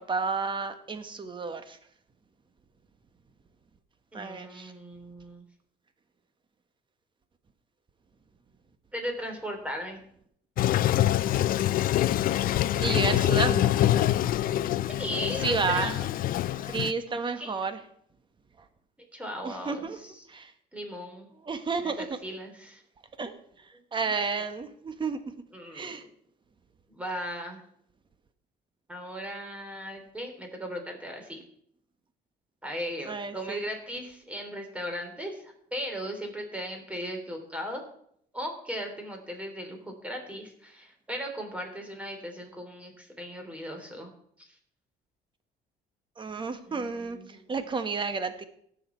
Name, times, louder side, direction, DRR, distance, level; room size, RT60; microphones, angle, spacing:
voice 1, 0.0-1.8 4.1-4.7 12.8-13.8 15.4-15.9 16.7-17.8 19.4-20.0 20.3-20.5 21.4-22.1 23.2-23.3 23.9-25.2 25.7-26.0 33.0-33.7 46.2-47.2 47.5-48.4, right 4 dB, 30° right, 9 dB, 1.3 m, -31 dB
voice 2, 4.1-5.4 8.9-10.0 12.7-12.9 13.2-13.6 14.9-16.1 17.4-17.6 19.1-20.2 20.7-21.3 21.8-22.8 24.0-24.1 25.5-26.1 26.9-27.6 28.9-31.4 32.6-37.8 38.3-44.1 46.7-47.5, equal, 10° right, 3 dB, 3.3 m, -37 dB
Toilet flush, 10.6-16.9, left 13 dB, 55° left, 0.5 m, -25 dB
17.5 x 6.5 x 4.5 m, 0.67 s
cardioid pair, 110°, 17 cm